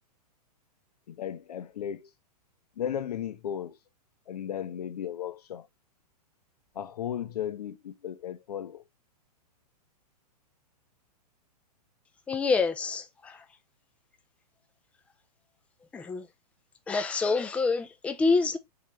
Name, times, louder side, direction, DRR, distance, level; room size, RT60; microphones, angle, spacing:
voice 1, 1.1-2.1 2.8-3.8 4.3-5.7 6.7-8.8, left 9 dB, 70° left, 0.7 m, -35 dB
voice 2, 12.3-13.4 15.9-16.3 16.9-18.6, left 4 dB, 5° left, 0.4 m, -27 dB
4.0 x 3.1 x 3.1 m
hypercardioid pair, 115°, 21 cm